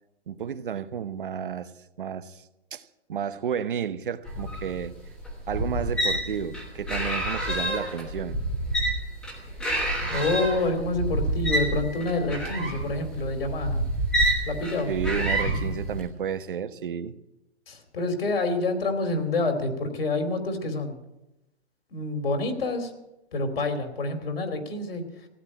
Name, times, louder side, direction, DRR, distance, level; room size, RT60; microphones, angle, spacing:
voice 1, 0.3-1.7 2.0-2.4 2.7-2.8 3.1-5.0 5.5-8.4 14.9-17.2, right 8 dB, 50° right, 0.9 m, -31 dB
sound 1, 4.3-16.1, right 1 dB, ahead, 1.2 m, -28 dB
voice 2, 10.1-13.8 14.4-14.9 17.7-21.0 21.9-22.9 23.3-25.0, left 2 dB, 60° left, 3.0 m, -27 dB
16.0 x 9.9 x 8.6 m
hypercardioid pair, 180°, 33 cm